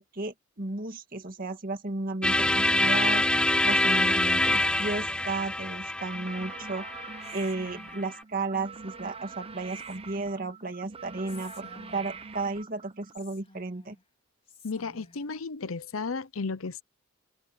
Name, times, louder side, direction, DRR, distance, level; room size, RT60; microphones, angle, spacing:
voice 1, 0.0-7.1 7.3-14.0, right 3 dB, 45° right, 2.1 m, -34 dB
sound 1, 2.2-8.2, left 1 dB, 5° left, 0.4 m, -26 dB
sound 2, 6.0-13.2, right 4 dB, 30° right, 0.9 m, -44 dB
Whispering, 7.2-8.3 9.6-10.3 11.2-12.4 13.1-14.0 14.5-15.3, left 4 dB, 30° left, 5.0 m, -54 dB
voice 2, 14.6-16.8, left 4 dB, 80° left, 0.8 m, -34 dB
open air
head